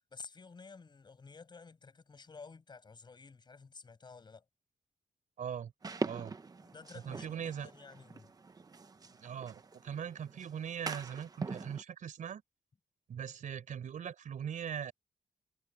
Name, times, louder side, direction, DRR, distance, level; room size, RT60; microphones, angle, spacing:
voice 1, 0.1-4.4 6.6-8.3, left 4 dB, 35° left, 6.3 m, -52 dB
voice 2, 5.4-5.7 6.0-6.4 7.0-7.7 9.2-12.4 13.1-14.9, right 8 dB, 85° right, 4.4 m, -40 dB
sound 1, 5.8-11.8, right 4 dB, 30° right, 1.0 m, -43 dB
wide cardioid pair, 150°, 13 cm